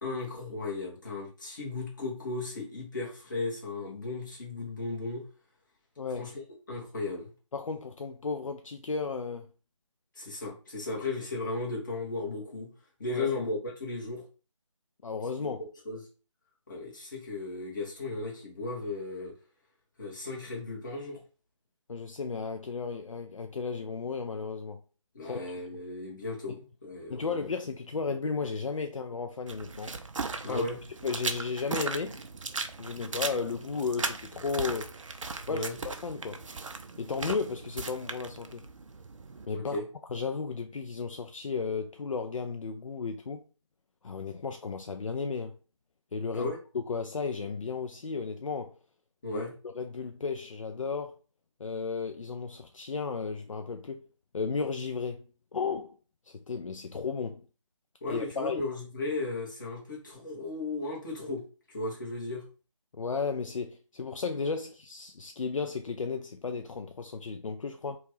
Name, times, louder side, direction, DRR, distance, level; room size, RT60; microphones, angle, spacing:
voice 1, 0.0-5.3 6.2-6.3 6.7-7.3 10.1-12.7 13.0-14.3 15.4-15.5 15.8-16.0 16.7-19.3 20.0-21.2 25.1-27.5 30.4-30.8 35.5-35.8 39.5-39.9 46.3-46.6 49.2-49.5 58.0-62.4, left 3 dB, 35° left, 1.1 m, -35 dB
voice 2, 6.0-6.3 7.5-9.5 13.1-13.3 15.0-15.6 21.9-24.8 25.2-25.4 26.5-26.6 27.1-29.9 30.5-30.7 31.0-32.2 32.8-34.9 35.5-35.7 36.0-36.4 37.0-38.6 39.5-39.8 40.1-43.4 44.0-45.6 46.1-48.8 49.3-51.2 51.6-54.0 54.3-56.0 56.2-57.4 58.1-58.6 62.9-68.0, left 5 dB, 75° left, 0.4 m, -34 dB
sound 1, 29.5-39.5, right 4 dB, 70° right, 0.5 m, -38 dB
2.9 x 2.3 x 3.0 m
figure-of-eight pair, 160°, 17 cm